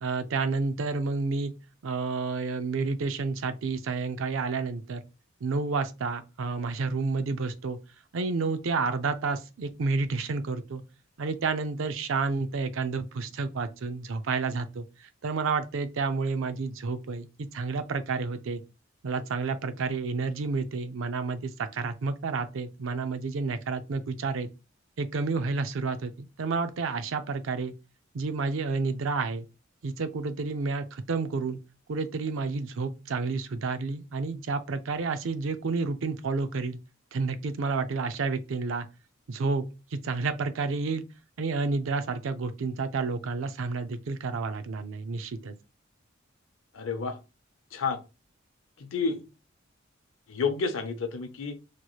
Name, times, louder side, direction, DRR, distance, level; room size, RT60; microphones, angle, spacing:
voice 1, 0.0-1.5 1.8-5.0 5.4-7.8 8.1-10.8 11.2-18.6 19.0-24.5 25.0-27.7 28.1-29.5 29.8-31.6 31.9-36.8 37.1-38.9 39.3-39.7 39.9-41.0 41.4-45.5, right 4 dB, 75° right, 0.5 m, -30 dB
voice 2, 46.7-47.2 47.7-48.0 48.8-49.2 50.3-51.6, left 5 dB, 80° left, 0.6 m, -30 dB
3.0 x 3.0 x 2.3 m
head